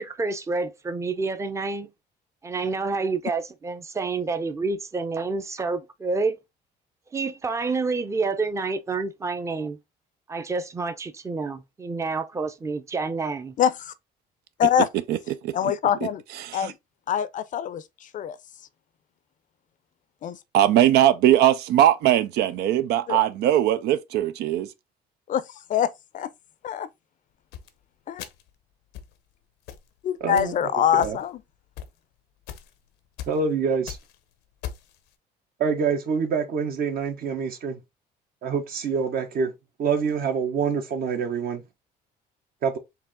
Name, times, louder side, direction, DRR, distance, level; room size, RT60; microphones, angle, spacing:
voice 1, 0.0-1.9 2.4-6.4 7.1-9.8 10.3-13.6, right 4 dB, 15° right, 0.6 m, -28 dB
voice 2, 13.6-13.9 14.6-14.9 15.5-16.2 16.5-16.7 17.1-18.4 20.2-20.4 23.1-23.2 25.3-26.3 26.6-26.9 28.1-28.2 30.0-31.4, left 9 dB, 50° left, 0.5 m, -24 dB
voice 3, 15.1-15.7 16.0-16.7 20.5-24.7, right 12 dB, 80° right, 0.5 m, -21 dB
sound 1, 27.5-27.7 28.2-28.5 28.9-29.1 29.7-29.9 30.4-30.6 31.0-31.4 31.8-31.9 32.5-32.7 33.2-33.4 33.7-34.1 34.6-34.9, left 10 dB, 90° left, 0.8 m, -38 dB
voice 4, 30.2-30.6 30.9-31.2 33.3-34.0 35.6-37.8 38.4-39.5 39.8-41.6 42.6-42.8, right 6 dB, 60° right, 1.2 m, -26 dB
4.8 x 2.8 x 3.5 m
cardioid pair, 110°, 17 cm